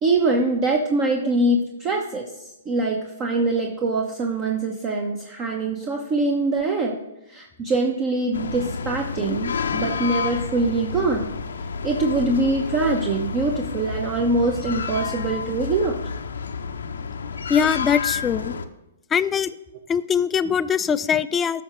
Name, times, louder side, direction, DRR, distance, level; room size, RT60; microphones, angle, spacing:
voice 1, 0.0-7.0 7.3-11.3 11.8-16.0, right 2 dB, 30° right, 2 dB, 0.9 m, -23 dB
sound 1, 8.3-18.6, left 5 dB, 80° left, 0.7 m, -30 dB
voice 2, 17.5-18.6 19.1-19.5 19.9-21.6, left 7 dB, 15° left, 14 dB, 0.3 m, -22 dB
14.0 x 5.8 x 3.1 m, 0.93 s
hypercardioid pair, 130°, 0 cm